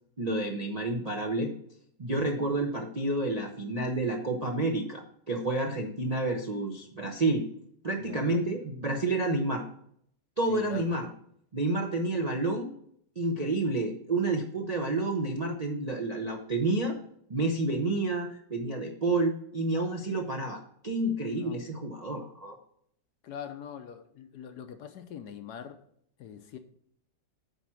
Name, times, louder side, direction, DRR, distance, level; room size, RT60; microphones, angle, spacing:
voice 1, 0.2-1.5 2.0-7.4 7.8-9.6 10.4-11.1 11.5-12.7 13.2-17.0 17.3-22.6, right 2 dB, 40° right, 0.5 m, -29 dB
voice 2, 8.0-8.5 10.5-10.9 21.3-21.6 23.2-25.8 26.2-26.6, left 8 dB, 70° left, 1.2 m, -43 dB
9.2 x 4.3 x 6.1 m
omnidirectional pair, 2.0 m